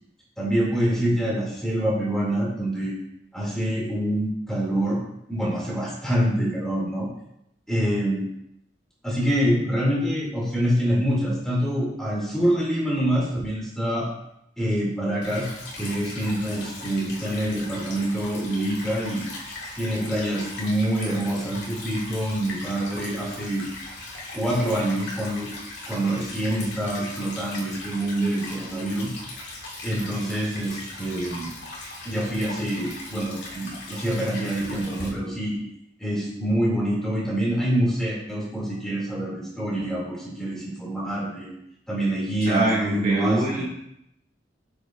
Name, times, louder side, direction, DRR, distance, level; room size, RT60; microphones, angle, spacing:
voice 1, 0.4-3.0 3.3-5.0 5.3-7.1 7.7-8.3 9.0-14.1 14.6-19.2 19.8-23.6 24.3-25.5 25.9-29.1 29.8-31.5 32.0-35.6 36.0-41.5 41.9-43.6, right 1 dB, 5° left, -6 dB, 2.6 m, -26 dB
Stream / Trickle dribble, 15.2-35.1, left 2 dB, 85° left, 2.0 m, -39 dB
voice 2, 42.4-43.6, right 2 dB, 50° right, -6 dB, 2.1 m, -24 dB
7.6 x 6.9 x 2.6 m, 0.78 s
head